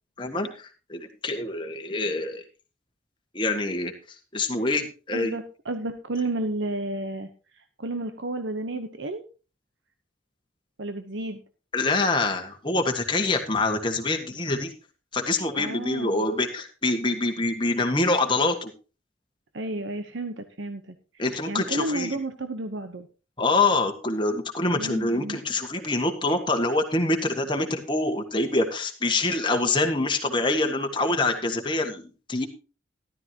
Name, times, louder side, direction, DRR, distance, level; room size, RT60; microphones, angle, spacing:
voice 1, 0.2-2.4 3.3-3.9 4.3-5.3 11.7-14.7 15.1-18.7 21.2-22.2 23.4-32.5, left 2 dB, 25° left, 4 dB, 1.7 m, -25 dB
voice 2, 5.1-9.2 10.8-11.4 15.5-16.2 19.5-23.1 24.7-25.4, right 2 dB, 80° right, 8 dB, 1.0 m, -32 dB
13.5 x 12.5 x 2.9 m, 0.33 s
head